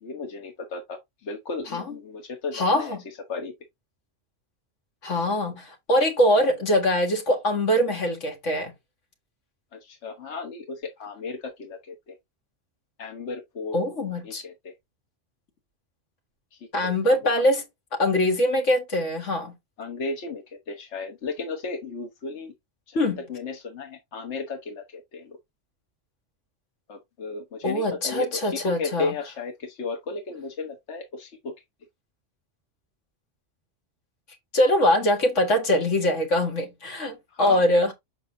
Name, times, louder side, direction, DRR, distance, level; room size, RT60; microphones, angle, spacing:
voice 1, 0.0-3.5 9.7-12.2 13.0-13.8 14.2-14.7 16.5-17.3 19.8-22.5 22.9-25.4 26.9-31.5 37.3-37.6, left 4 dB, 70° left, 1.5 m, -35 dB
voice 2, 2.5-3.0 5.0-8.7 13.7-14.4 16.7-17.6 17.9-19.5 22.9-23.2 27.6-29.1 34.5-37.9, left 1 dB, 90° left, 2.2 m, -23 dB
7.2 x 5.6 x 2.7 m
omnidirectional pair, 1.2 m